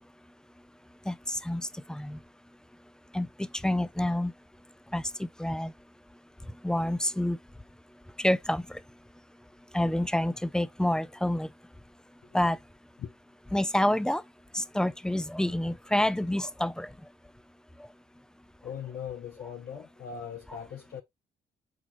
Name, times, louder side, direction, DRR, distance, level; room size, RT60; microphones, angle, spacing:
voice 1, 1.1-2.2 3.1-4.3 4.9-5.7 6.6-7.4 8.2-8.8 9.7-11.5 12.3-12.6 13.5-14.2 14.5-16.9, left 1 dB, 5° left, 0.3 m, -28 dB
voice 2, 18.6-21.0, left 8 dB, 55° left, 0.7 m, -39 dB
4.3 x 4.1 x 2.9 m
hypercardioid pair, 50°, 19 cm